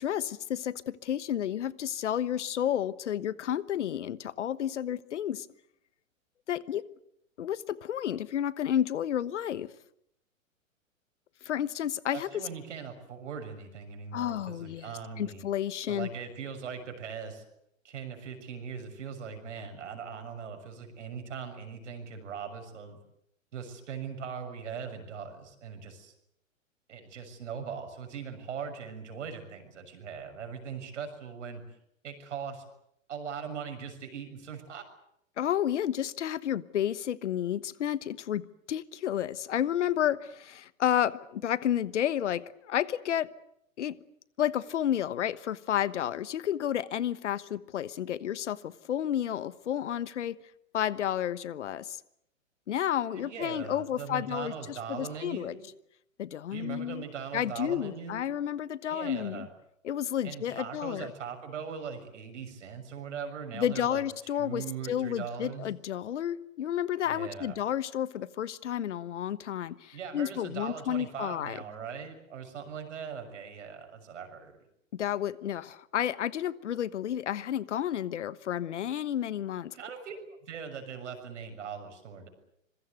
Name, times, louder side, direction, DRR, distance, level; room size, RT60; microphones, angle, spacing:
voice 1, 0.0-5.5 6.5-6.8 7.4-9.7 11.4-12.3 14.1-16.1 35.4-43.3 43.8-44.0 44.4-50.4 50.7-52.0 52.7-55.5 56.2-57.0 57.3-59.5 59.8-61.1 63.5-71.6 74.9-79.7, left 10 dB, 60° left, 18 dB, 1.3 m, -31 dB
voice 2, 12.1-15.5 15.9-17.4 17.8-23.0 23.5-26.1 26.9-31.8 32.0-32.6 33.1-34.8 53.1-55.6 56.5-58.3 58.9-59.5 60.2-64.0 64.3-65.7 67.0-67.6 69.9-74.6 79.7-82.3, right 6 dB, 60° right, 6 dB, 6.8 m, -40 dB
26.0 x 22.5 x 8.0 m, 0.74 s
figure-of-eight pair, 110°, 40 cm